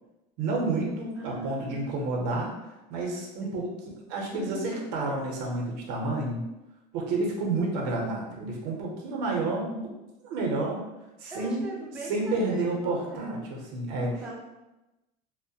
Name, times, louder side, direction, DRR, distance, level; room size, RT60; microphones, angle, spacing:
voice 1, 0.4-2.5 2.9-3.7 4.1-6.4 6.9-9.8 10.2-10.8 11.2-11.6 12.1-14.3, right 2 dB, 80° right, -1 dB, 0.7 m, -30 dB
voice 2, 1.1-1.9 3.4-3.7 4.3-5.0 11.3-13.4 14.0-14.3, right 1 dB, 5° right, -5 dB, 0.3 m, -40 dB
2.2 x 2.1 x 2.7 m, 0.99 s
cardioid pair, 145°, 21 cm